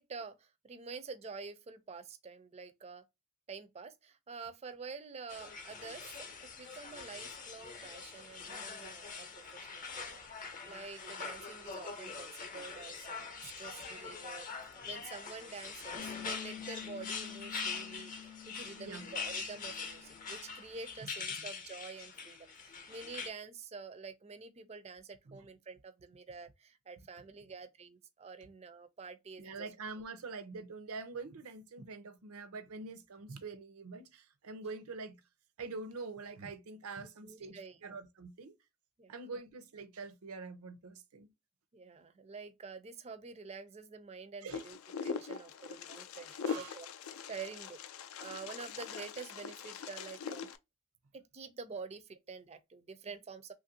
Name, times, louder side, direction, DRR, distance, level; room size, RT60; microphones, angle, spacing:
voice 1, 0.0-3.0 3.5-10.2 10.7-29.7 37.2-37.8 39.0-39.1 41.7-44.8 45.0-46.9 47.3-47.8 48.2-50.5 51.1-53.5, right 4 dB, 30° right, 0.4 m, -48 dB
sound 1, 5.3-23.3, left 5 dB, 40° left, 0.7 m, -43 dB
Piano, 16.0-21.1, left 11 dB, 90° left, 0.8 m, -50 dB
voice 2, 18.8-19.1 21.3-21.5 25.3-25.4 29.4-35.2 35.6-38.5 39.1-41.3 44.4-44.6 45.3-45.4 46.3-46.7, right 4 dB, 85° right, 0.6 m, -45 dB
Wind, 44.5-50.6, left 6 dB, 70° left, 0.4 m, -42 dB
3.1 x 2.5 x 2.6 m
head